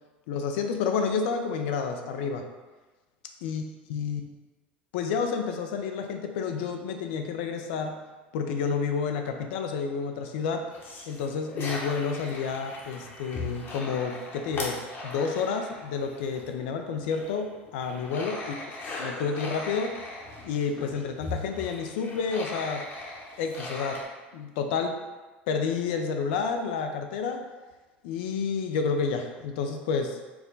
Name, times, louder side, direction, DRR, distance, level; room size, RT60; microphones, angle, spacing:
voice 1, 0.3-2.4 3.4-3.6 3.9-4.3 4.9-7.9 8.3-10.6 11.1-14.8 15.0-17.5 17.7-18.6 18.9-19.9 20.4-22.8 23.4-24.0 24.3-25.0 25.5-27.4 28.0-30.2, left 5 dB, 60° left, 5 dB, 0.5 m, -30 dB
sound 1, 10.7-16.6 17.0-24.0, left 2 dB, 40° left, 0.9 m, -39 dB
4.7 x 2.2 x 3.8 m, 1.2 s
figure-of-eight pair, 75°, 6 cm